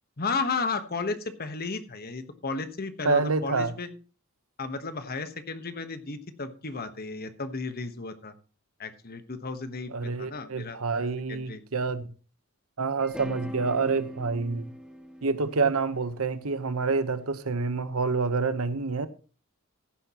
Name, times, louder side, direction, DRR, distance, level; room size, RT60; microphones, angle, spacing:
voice 1, 0.2-3.9 4.6-8.3 8.8-11.6, left 4 dB, 45° left, 1.2 m, -34 dB
voice 2, 3.0-3.7 9.9-12.1 12.8-14.7 15.2-19.1, right 4 dB, 80° right, 1.1 m, -27 dB
sound 1, 13.0-17.2, equal, 5° right, 1.6 m, -42 dB
15.5 x 10.5 x 3.0 m
head